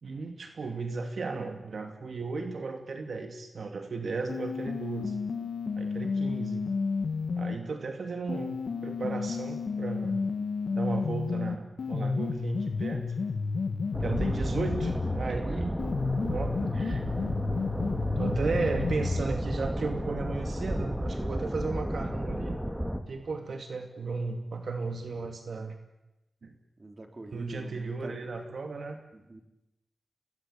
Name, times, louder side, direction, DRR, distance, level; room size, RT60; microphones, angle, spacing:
voice 1, 0.0-5.2 5.8-6.7 7.4-10.3 10.7-13.1 14.0-15.8 16.2-17.1 18.2-22.6 23.1-25.8 26.4-26.5 27.3-29.0, right 4 dB, 70° right, 5 dB, 2.6 m, -35 dB
sound 1, 4.3-7.6 8.3-15.3 15.8-19.3, left 4 dB, 85° left, 2.0 m, -31 dB
sound 2, 13.9-23.0, equal, 5° right, 2.6 m, -32 dB
voice 2, 26.8-28.1 29.1-29.4, right 2 dB, 35° right, 5 dB, 3.6 m, -44 dB
29.0 x 20.5 x 8.7 m, 0.93 s
wide cardioid pair, 105°, 0 cm